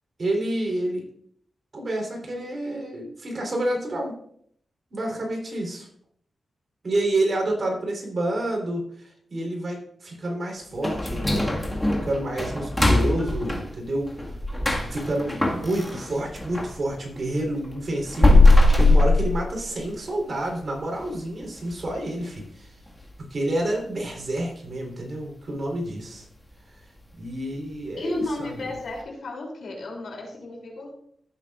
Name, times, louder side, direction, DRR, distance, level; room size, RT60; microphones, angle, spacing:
voice 1, 0.2-1.0 1.7-4.1 4.9-5.9 6.8-14.4 14.9-22.8 23.3-26.3 27.2-28.5, right 1 dB, 50° right, 0 dB, 3.8 m, -29 dB
sound 1, 10.8-16.8 17.1-20.0 20.3-20.4 20.9-21.0 21.6-21.9 22.2-22.3 22.9-23.0, left 2 dB, 10° left, 1.9 m, -21 dB
voice 2, 28.0-30.9, left 2 dB, 75° left, 0 dB, 3.1 m, -33 dB
15.0 x 7.5 x 2.5 m, 0.65 s
wide cardioid pair, 90°, 0 cm